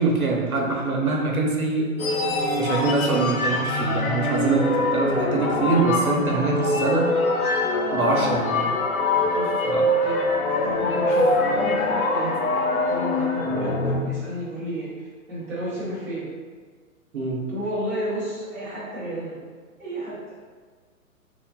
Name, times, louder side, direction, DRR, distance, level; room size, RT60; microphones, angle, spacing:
voice 1, 0.0-1.9 2.6-7.1 7.9-8.7 9.6-9.9 12.2-12.3 17.1-17.5, right 3 dB, 85° right, -1 dB, 0.9 m, -24 dB
sound 1, 2.0-14.0, left 2 dB, 80° left, 0.7 m, -23 dB
voice 2, 9.0-10.2 10.5-16.2 17.5-19.3 19.8-20.2, right 1 dB, 5° right, -11 dB, 1.2 m, -32 dB
3.3 x 2.2 x 3.7 m, 1.5 s
figure-of-eight pair, 120°, 43 cm